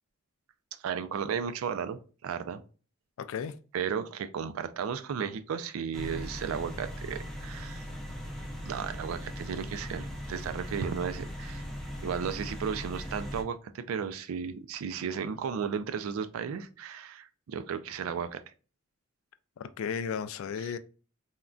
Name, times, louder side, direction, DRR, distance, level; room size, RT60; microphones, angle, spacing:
voice 1, 0.8-2.6 3.7-7.8 8.6-11.6 12.0-18.4 20.6-20.7, right 7 dB, 80° right, 0.4 m, -34 dB
voice 2, 3.2-3.5 19.6-20.8, left 7 dB, 75° left, 0.3 m, -34 dB
sound 1, 5.9-13.4, equal, ahead, 0.5 m, -39 dB
3.6 x 2.1 x 2.3 m
head